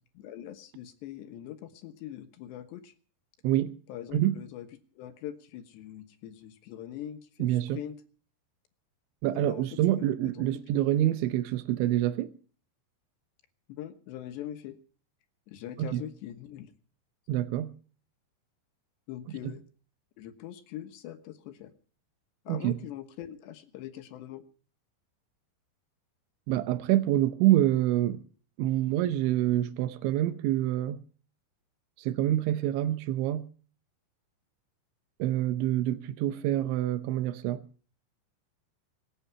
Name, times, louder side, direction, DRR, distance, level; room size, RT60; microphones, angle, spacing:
voice 1, 0.2-2.9 3.9-4.7 5.0-8.0 9.3-9.6 9.9-10.1 13.7-14.8 15.5-16.7 19.1-19.6 20.2-21.7 22.5-24.4, left 11 dB, 75° left, 3.4 m, -42 dB
voice 2, 7.4-7.8 9.2-12.3 15.8-16.0 17.3-17.7 19.4-19.5 22.5-22.8 26.5-28.2 28.6-31.0 32.0-33.5 35.2-37.6, right 13 dB, 90° right, 3.3 m, -26 dB
25.5 x 8.8 x 5.6 m
omnidirectional pair, 5.2 m